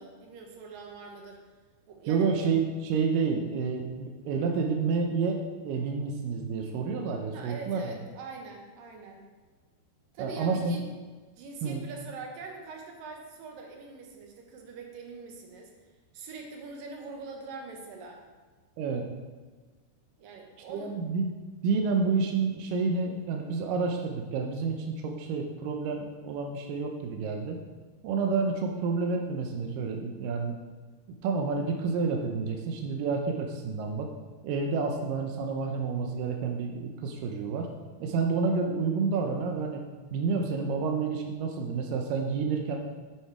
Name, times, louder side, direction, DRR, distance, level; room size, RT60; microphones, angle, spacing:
voice 1, 0.0-1.4 1.9-2.4 7.3-9.2 10.1-10.8 11.4-15.7 16.1-18.2 20.2-20.9, right 4 dB, 65° right, 2 dB, 2.5 m, -43 dB
voice 2, 2.1-7.9 10.2-10.7 11.6-11.9 18.8-19.0 20.7-21.3 21.6-27.6 28.0-30.5 31.2-34.1 34.4-37.7 38.0-39.8 40.1-42.8, right 4 dB, 80° right, 2 dB, 1.9 m, -29 dB
9.5 x 6.6 x 4.7 m, 1.4 s
omnidirectional pair, 4.9 m